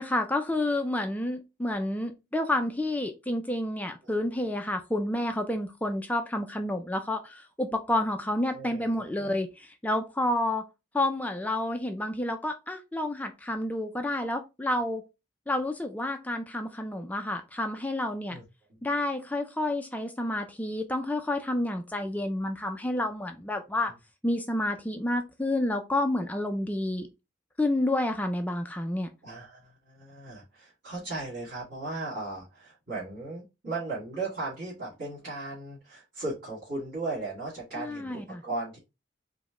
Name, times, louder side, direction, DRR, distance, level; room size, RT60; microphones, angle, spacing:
voice 1, 0.0-10.6 10.9-15.0 15.5-18.4 18.8-23.9 24.2-27.1 27.6-29.1 37.8-38.4, left 1 dB, 10° left, 0.4 m, -29 dB
voice 2, 8.5-9.3 18.3-18.4 29.2-38.8, right 2 dB, 55° right, 2.2 m, -37 dB
4.9 x 2.1 x 3.6 m
head